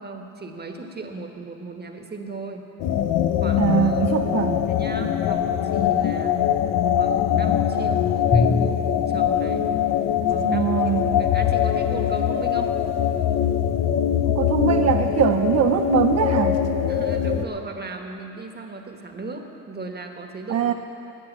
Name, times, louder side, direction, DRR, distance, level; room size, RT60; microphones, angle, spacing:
voice 1, 0.0-2.7 3.4-4.0 4.7-6.4 7.0-9.7 10.3-10.7 11.2-12.8 16.9-20.7, right 3 dB, 30° right, 4 dB, 1.4 m, -36 dB
sound 1, 2.8-17.4, left 9 dB, 85° left, 0.7 m, -22 dB
voice 2, 3.6-4.7 10.4-11.2 14.2-16.6 20.5-20.7, right 9 dB, 50° right, 6 dB, 0.6 m, -22 dB
Drum, 8.3-10.7, left 3 dB, 45° left, 2.9 m, -27 dB
19.0 x 6.4 x 7.3 m, 2.9 s
cardioid pair, 85°, 32 cm